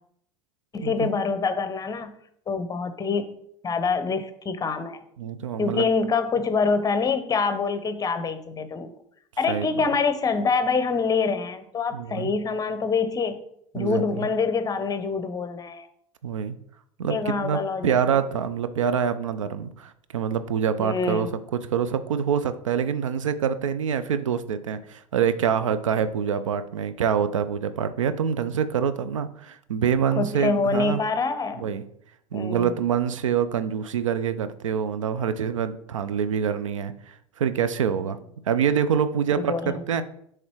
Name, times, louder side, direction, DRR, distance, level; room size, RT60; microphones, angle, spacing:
voice 1, 0.7-2.2 2.5-3.3 3.6-5.0 5.6-8.9 9.4-13.4 13.7-15.9 17.1-18.2 20.8-21.3 30.2-31.7 32.3-32.7 39.3-39.8, left 4 dB, 20° left, 10 dB, 0.8 m, -25 dB
voice 2, 5.2-5.8 9.5-9.7 11.9-12.3 13.8-14.3 16.2-16.6 17.0-31.0 31.6-31.8 32.3-38.2 38.5-40.0, right 7 dB, 75° right, 12 dB, 0.5 m, -26 dB
7.1 x 3.3 x 4.6 m, 0.68 s
figure-of-eight pair, 75°, 16 cm